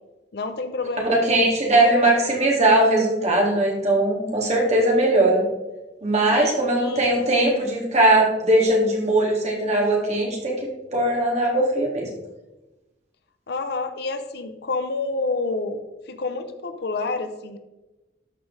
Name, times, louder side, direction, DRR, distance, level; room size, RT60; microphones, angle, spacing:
voice 1, 0.3-1.4 1.8-2.1 6.3-7.6 13.5-15.8 16.1-17.6, left 3 dB, 60° left, 9 dB, 0.6 m, -29 dB
voice 2, 1.1-5.4 6.0-10.6 10.9-12.1, right 1 dB, 40° right, -2 dB, 2.2 m, -20 dB
12.5 x 4.9 x 3.3 m, 1.1 s
head